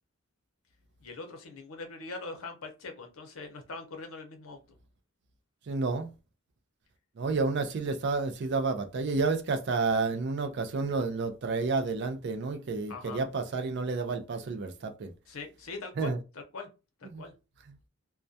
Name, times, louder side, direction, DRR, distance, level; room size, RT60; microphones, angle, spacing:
voice 1, 1.0-4.6 12.9-13.2 15.3-16.7 17.0-17.3, left 3 dB, 80° left, 0.7 m, -42 dB
voice 2, 5.7-6.1 7.2-15.1 16.0-16.2 17.1-17.2 17.7-17.8, right 4 dB, 55° right, 0.4 m, -30 dB
2.2 x 2.1 x 2.6 m
head